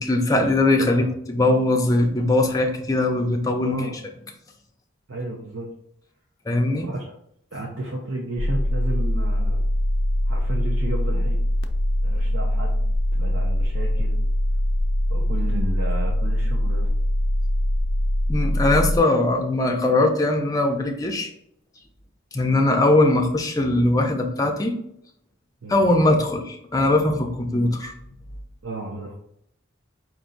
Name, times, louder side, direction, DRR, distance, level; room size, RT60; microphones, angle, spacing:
voice 1, 0.0-3.9 6.5-6.9 18.3-21.3 22.3-24.7 25.7-27.9, left 2 dB, 15° left, 2 dB, 0.6 m, -20 dB
voice 2, 0.8-1.1 3.6-4.0 5.1-5.7 6.8-7.1 7.5-9.6 10.3-11.4 12.0-12.8 13.1-14.2 15.1-16.9 25.6-25.8 28.6-29.2, right 2 dB, 90° right, -2 dB, 0.8 m, -32 dB
sound 1, 8.4-19.0, left 1 dB, 65° left, 0.5 m, -22 dB
4.6 x 2.7 x 3.9 m, 0.72 s
head